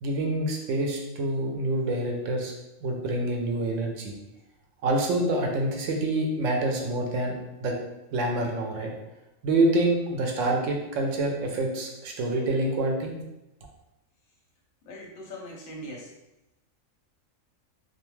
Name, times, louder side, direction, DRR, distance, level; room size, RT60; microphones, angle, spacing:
voice 1, 0.0-2.5 2.8-4.1 4.8-7.7 8.1-8.9 9.4-13.1, right 2 dB, 70° right, 1 dB, 0.9 m, -26 dB
voice 2, 14.8-16.1, equal, 50° left, -1 dB, 0.7 m, -40 dB
2.4 x 2.3 x 3.0 m, 0.93 s
omnidirectional pair, 1.4 m